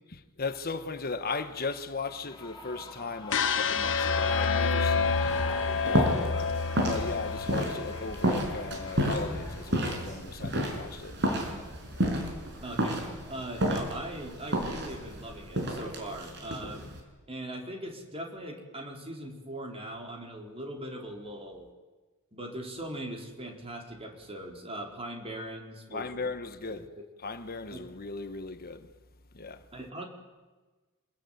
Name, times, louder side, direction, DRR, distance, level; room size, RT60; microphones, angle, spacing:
voice 1, 0.4-5.2 5.5-5.6 5.8-6.5 6.8-11.2 25.9-26.9 27.2-28.9 29.3-29.6, left 4 dB, 45° left, 1.2 m, -37 dB
Shout / Cheering, 2.1-9.8, left 3 dB, 20° left, 6.7 m, -42 dB
sound 1, 3.3-9.4, left 5 dB, 65° left, 1.5 m, -29 dB
sound 2, 4.8-17.0, equal, 55° right, 5.4 m, -32 dB
voice 2, 12.6-13.0 13.3-16.9 17.3-21.7 22.3-26.3 26.7-27.0 27.7-27.9 29.7-30.0, right 1 dB, 30° right, 4.5 m, -40 dB
27.5 x 21.5 x 9.4 m
head